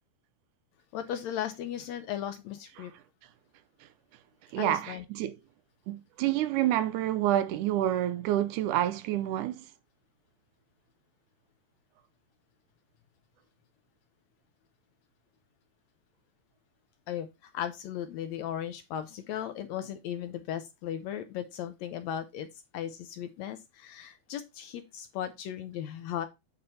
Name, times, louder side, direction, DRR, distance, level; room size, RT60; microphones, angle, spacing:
voice 1, 0.9-2.9 4.6-5.0 17.1-26.3, left 10 dB, 75° left, 1.7 m, -36 dB
voice 2, 4.5-5.4 5.9-9.6, right 13 dB, 80° right, 2.1 m, -28 dB
8.7 x 4.1 x 4.2 m
omnidirectional pair, 3.7 m